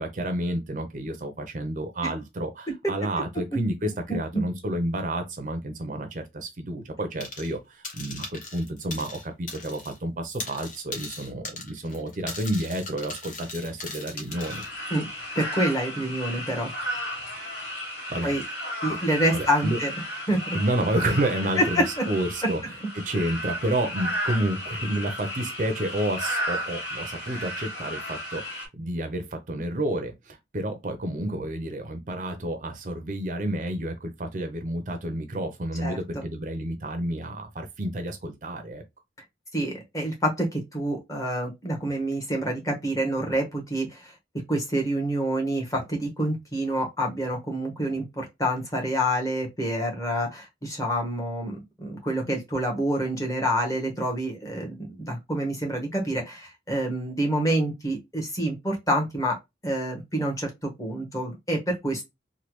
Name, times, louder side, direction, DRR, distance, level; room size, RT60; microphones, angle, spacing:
voice 1, 0.0-14.6 18.1-18.3 18.9-19.0 19.3-19.8 20.5-22.6 23.0-38.8, right 1 dB, 45° right, 0.5 m, -30 dB
sound 1, 7.2-7.6 7.8-10.0 10.2-14.7, left 3 dB, 45° left, 0.9 m, -39 dB
sound 2, 14.3-28.7, equal, 70° left, 1.7 m, -34 dB
voice 2, 15.3-16.7 18.2-18.4 18.8-19.9 20.3-20.4 21.5-22.0 35.8-36.2 39.5-44.1 44.5-59.4 59.6-62.0, right 1 dB, 20° left, 1.0 m, -27 dB
3.2 x 2.2 x 3.0 m
head